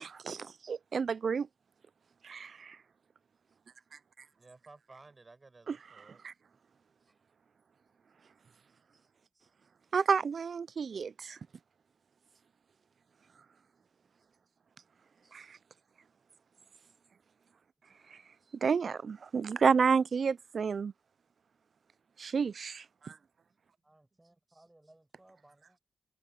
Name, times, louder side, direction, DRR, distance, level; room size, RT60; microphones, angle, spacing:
voice 1, 0.1-1.5 2.2-2.8 5.7-5.8 6.2-6.3 9.9-11.4 15.3-15.5 18.6-20.9 22.2-23.2, right 6 dB, 70° right, 0.3 m, -30 dB
voice 2, 4.3-6.2 7.0-7.1 8.2-8.3 8.7-9.7 11.1-11.6 13.8-14.1 14.4-14.9 15.1-15.4 16.6-16.7 17.9-18.5 23.2-23.7 24.2-24.6, right 3 dB, 40° right, 5.4 m, -61 dB
voice 3, 23.8-25.8, right 1 dB, 20° right, 6.5 m, -63 dB
cardioid pair, 60°, 0 cm